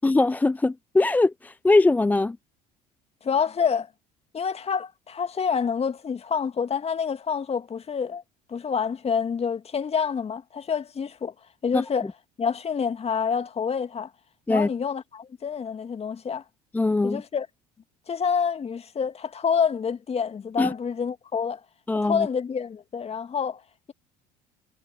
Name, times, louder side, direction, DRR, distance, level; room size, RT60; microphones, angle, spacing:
voice 1, 0.0-2.4 11.7-11.8 14.5-14.7 16.7-17.2 20.6-20.7 21.9-22.3, left 2 dB, 10° left, 0.4 m, -21 dB
voice 2, 3.2-3.9 4.3-8.2 8.5-11.3 11.6-12.1 12.4-14.1 14.5-16.4 17.0-17.5 18.1-21.6 21.9-23.6, left 6 dB, 30° left, 2.3 m, -27 dB
figure-of-eight pair, 60°, 20 cm